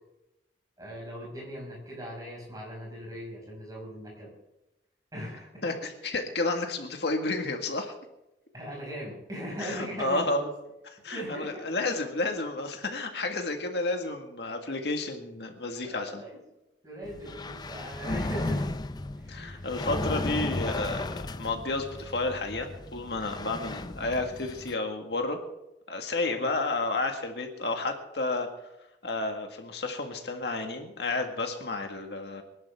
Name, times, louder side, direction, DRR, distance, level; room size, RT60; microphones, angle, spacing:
voice 1, 0.8-4.3 5.1-5.6 8.5-10.5 11.1-11.7 15.8-16.4 16.8-18.7 19.2-19.7 26.3-26.5, equal, 20° right, -2 dB, 6.2 m, -39 dB
voice 2, 5.6-7.9 9.6-10.4 11.0-16.2 19.3-25.4 25.9-28.5 29.0-32.4, left 2 dB, 65° left, 4 dB, 1.8 m, -31 dB
sound 1, 17.0-24.7, left 2 dB, 25° left, 0.5 m, -35 dB
24.5 x 11.0 x 3.6 m, 0.92 s
head